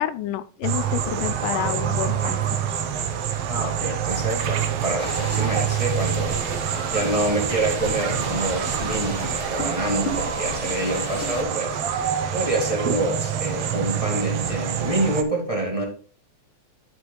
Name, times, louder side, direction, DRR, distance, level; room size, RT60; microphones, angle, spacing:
voice 1, 0.0-2.4, left 13 dB, 80° left, 14 dB, 2.0 m, -28 dB
sound 1, 0.6-15.2, right 8 dB, 90° right, 1.3 m, -26 dB
voice 2, 3.5-6.4 6.9-11.8 12.3-15.8, right 2 dB, 20° right, 0 dB, 0.9 m, -26 dB
sound 2, 4.1-9.6, right 4 dB, 55° right, 2.1 m, -40 dB
sound 3, 5.0-11.4, left 1 dB, 40° left, 3.1 m, -35 dB
11.5 x 7.8 x 2.3 m, 0.37 s
omnidirectional pair, 3.9 m